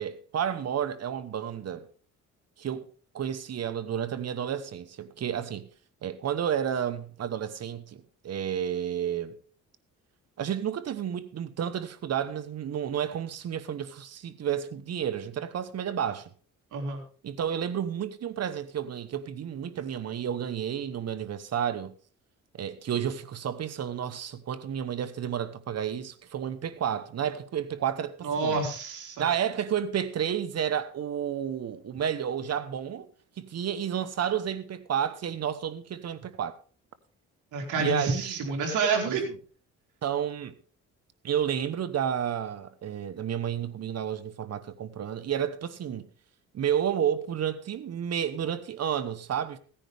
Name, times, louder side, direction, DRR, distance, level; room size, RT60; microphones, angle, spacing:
voice 1, 0.0-1.9 2.6-2.9 3.1-5.7 6.0-9.3 10.4-16.3 17.2-21.9 22.5-28.6 29.2-33.1 33.4-36.6 37.8-38.4 39.0-39.2 40.0-40.5 41.2-46.1 46.5-49.6, right 9 dB, 55° right, 1.2 m, -31 dB
voice 2, 16.7-17.0 28.2-29.3 37.5-39.2, right 4 dB, 80° right, 4.0 m, -28 dB
16.5 x 10.0 x 3.5 m
cardioid pair, 90°, 30 cm